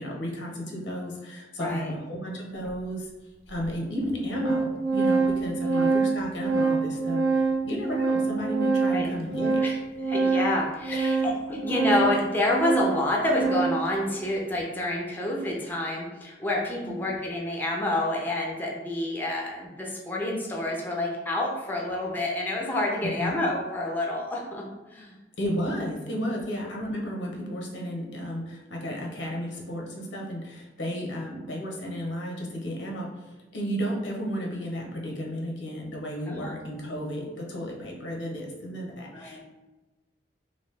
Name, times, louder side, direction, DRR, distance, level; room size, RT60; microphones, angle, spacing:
voice 1, 0.0-3.1 3.5-9.6 10.9-11.6 16.8-16.9 23.0-23.4 25.4-39.4, equal, 90° left, -1 dB, 0.8 m, -33 dB
voice 2, 1.6-1.9 5.7-5.9 8.9-9.1 9.6-9.8 10.1-11.3 11.6-24.6 24.9-25.1 36.3-36.5 39.1-39.4, left 1 dB, 10° left, -2 dB, 0.4 m, -28 dB
Organ, 2.7-2.8 3.6-3.7 4.0-13.9, right 4 dB, 60° right, 0.5 m, -26 dB
3.0 x 2.6 x 3.2 m, 1.2 s
head